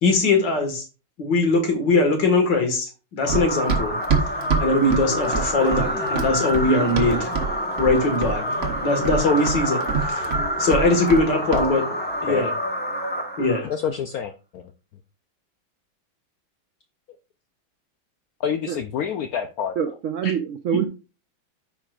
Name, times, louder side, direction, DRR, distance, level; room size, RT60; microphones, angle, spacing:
voice 1, 0.0-0.8 1.2-4.0 4.6-7.3 7.8-8.5 8.8-9.8 10.1-10.3 10.6-11.8 12.2-12.5 13.4-13.7, left 2 dB, 65° left, 2.3 m, -21 dB
sound 1, 3.2-14.0, equal, 5° left, 0.9 m, -27 dB
Run, 3.3-7.5 7.8-8.4 8.6-11.3 11.5-11.7, right 6 dB, 40° right, 1.0 m, -25 dB
voice 2, 11.5-11.9 12.3-12.6 13.6-14.7 18.4-19.8, left 8 dB, 80° left, 0.8 m, -28 dB
voice 3, 19.8-20.9, right 8 dB, 75° right, 0.7 m, -25 dB
14.0 x 4.7 x 2.4 m
omnidirectional pair, 2.2 m